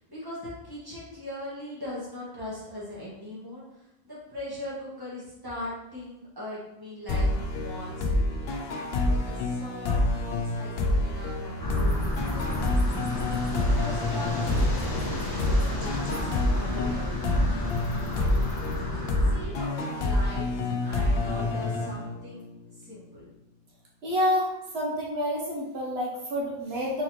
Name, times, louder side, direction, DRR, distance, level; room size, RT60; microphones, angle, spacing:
voice 1, 0.0-8.5 9.0-17.5 18.1-18.4 18.9-20.5 20.8-22.4 22.7-23.3, left 1 dB, 20° right, -8 dB, 1.7 m, -41 dB
sound 1, 7.1-22.5, left 2 dB, 75° left, 0.8 m, -27 dB
sound 2, 11.6-19.4, left 1 dB, 25° left, 0.7 m, -32 dB
voice 2, 24.0-27.0, left 1 dB, 80° right, -4 dB, 1.2 m, -28 dB
4.2 x 3.9 x 3.1 m, 0.89 s
omnidirectional pair, 1.0 m